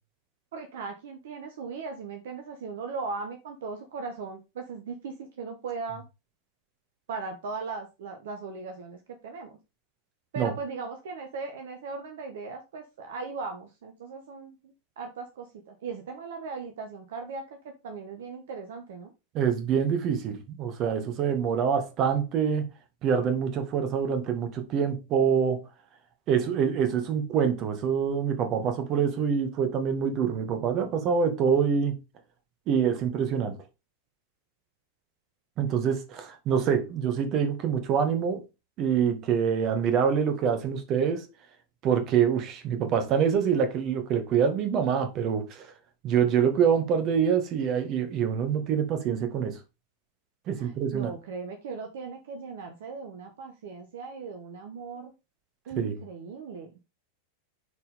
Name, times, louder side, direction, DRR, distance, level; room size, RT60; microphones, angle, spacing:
voice 1, 0.5-6.0 7.1-9.6 10.3-17.5 17.8-19.1 50.6-55.1 55.7-56.7, right 4 dB, 55° right, 1.3 m, -38 dB
voice 2, 19.3-22.7 23.0-25.6 26.3-32.0 32.7-33.6 35.6-38.4 38.8-41.3 41.8-45.7 46.0-49.6 50.5-51.1 55.8-55.9, right 7 dB, 35° right, 1.9 m, -25 dB
9.3 x 4.7 x 3.6 m
figure-of-eight pair, 90°, 0 cm